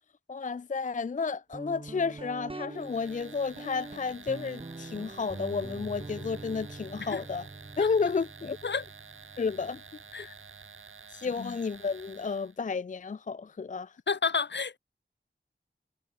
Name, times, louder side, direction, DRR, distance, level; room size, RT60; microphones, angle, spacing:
voice 1, 0.3-7.5 7.8-8.6 9.4-9.8 11.1-14.0, left 5 dB, 40° left, 0.4 m, -32 dB
Guitar, 1.5-11.0, right 2 dB, 25° right, 0.8 m, -45 dB
sound 1, 2.7-12.6, right 5 dB, 80° right, 1.0 m, -50 dB
voice 2, 14.1-14.8, left 5 dB, 60° left, 0.7 m, -31 dB
wide cardioid pair, 60°, 21 cm